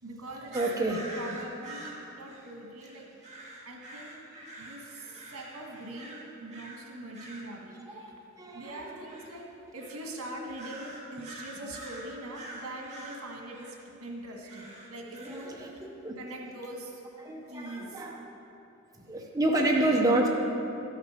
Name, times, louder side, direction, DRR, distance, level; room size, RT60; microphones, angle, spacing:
voice 1, 0.0-3.1 3.6-4.2 4.6-8.2 8.5-15.8 16.2-17.0 17.5-18.0, right 1 dB, 80° right, 0 dB, 1.6 m, -43 dB
voice 2, 0.5-1.0 7.9-8.1 8.4-8.9 15.2-16.1 17.2-18.2 19.0-20.3, right 2 dB, 15° right, -1 dB, 0.8 m, -28 dB
sound 1, 0.5-6.8 7.1-7.5 8.6-9.4 9.8-10.1 10.5-13.8 14.5-15.5, right 1 dB, 35° right, 1.5 m, -46 dB
12.0 x 6.6 x 5.0 m, 2.8 s
head